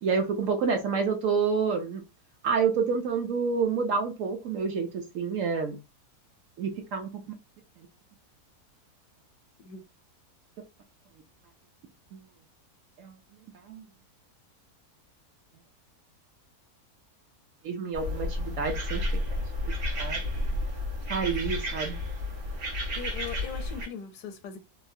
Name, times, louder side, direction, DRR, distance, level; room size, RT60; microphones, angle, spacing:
voice 1, 0.0-2.0 2.4-5.8 6.6-7.1 12.1-12.2 13.0-13.2 13.7-13.8 17.6-19.1 20.0-20.2 21.1-22.0, right 5 dB, 65° right, 0.9 m, -28 dB
sound 1, 17.9-23.9, left 1 dB, 90° right, 2.0 m, -31 dB
voice 2, 22.9-24.6, left 7 dB, 80° left, 1.1 m, -40 dB
3.9 x 2.0 x 2.6 m
omnidirectional pair, 1.6 m